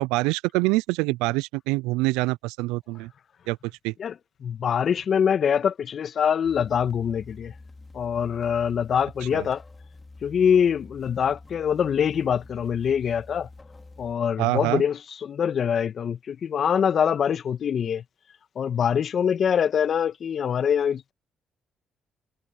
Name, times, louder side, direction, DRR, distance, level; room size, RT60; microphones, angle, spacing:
voice 1, 0.0-3.1 3.5-3.6 3.8-3.9 9.3-9.4 14.4-14.8, right 22 dB, 85° right, 0.3 m, -25 dB
voice 2, 4.0-7.5 7.9-9.6 10.2-13.5 14.0-18.0 18.6-21.1, left 8 dB, 60° left, 1.7 m, -24 dB
sound 1, 6.4-14.2, left 3 dB, 25° left, 3.9 m, -47 dB
supercardioid pair, 55°, 0 cm